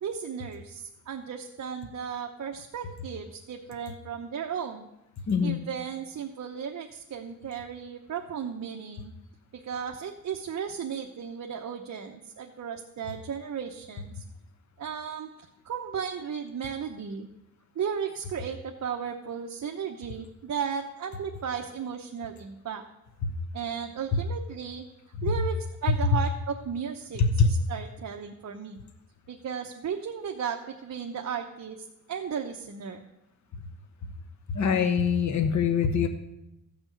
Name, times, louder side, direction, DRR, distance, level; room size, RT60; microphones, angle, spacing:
voice 1, 0.0-4.9 5.4-9.1 9.5-14.2 14.8-17.3 17.7-22.8 23.5-24.9 25.2-28.8 29.3-33.0, right 7 dB, 50° right, 3 dB, 0.9 m, -35 dB
voice 2, 5.3-5.6 23.2-23.3 27.2-27.5 34.5-36.1, left 6 dB, 50° left, 6 dB, 1.0 m, -23 dB
14.0 x 6.1 x 8.3 m, 0.89 s
wide cardioid pair, 160°, 36 cm